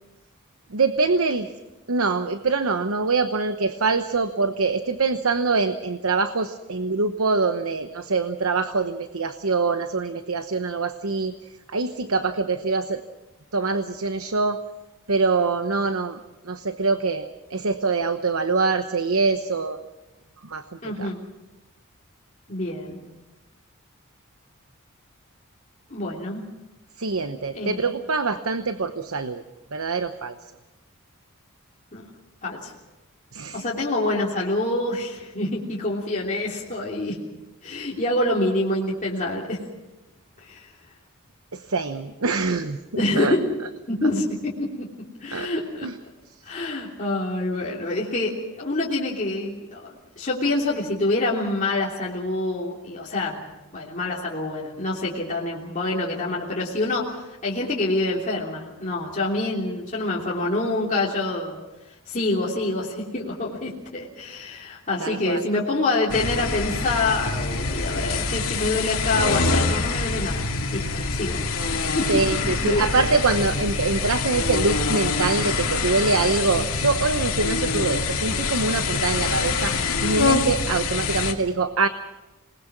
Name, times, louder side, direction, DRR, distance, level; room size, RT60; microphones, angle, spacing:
voice 1, 0.7-1.5 1.9-11.3 11.7-13.0 13.5-14.6 15.1-16.2 16.5-19.8 20.4-20.6 21.0-21.1 27.0-29.4 29.7-30.3 33.3-33.6 41.5-43.3 45.3-45.5 45.8-45.9 65.0-65.4 72.1-81.9, right 4 dB, 75° right, 9 dB, 1.0 m, -24 dB
voice 2, 20.8-21.2 22.5-23.0 25.9-26.4 27.5-27.8 31.9-32.1 32.4-32.7 33.5-37.2 37.6-39.6 40.4-40.7 43.0-43.4 43.9-44.5 45.2-45.9 46.4-53.4 53.7-61.6 62.1-71.4 71.9-72.9, left 2 dB, 35° left, -5 dB, 3.2 m, -26 dB
sound 1, 66.1-81.3, left 4 dB, 75° left, 2.6 m, -25 dB
27.0 x 20.0 x 6.1 m, 1.1 s
head